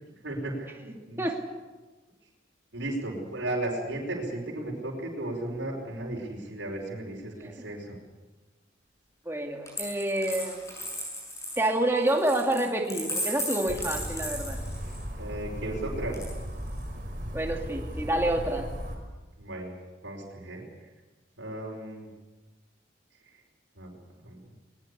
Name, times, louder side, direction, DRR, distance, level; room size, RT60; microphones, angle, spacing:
voice 1, 0.2-1.2 2.7-8.0 15.2-16.2 19.4-19.7 20.0-20.9 21.4-22.1 23.3-23.4 23.8-23.9 24.2-24.4, right 1 dB, 75° right, -2 dB, 5.2 m, -35 dB
voice 2, 9.3-10.6 11.6-14.6 17.3-18.7, right 1 dB, 10° right, 1 dB, 2.5 m, -28 dB
Coin (dropping), 9.7-15.0 16.1-16.8, left 1 dB, 15° left, 7.9 m, -36 dB
sound 1, 13.7-19.0, equal, 45° right, 5.1 m, -36 dB
21.0 x 21.0 x 8.3 m, 1.2 s
head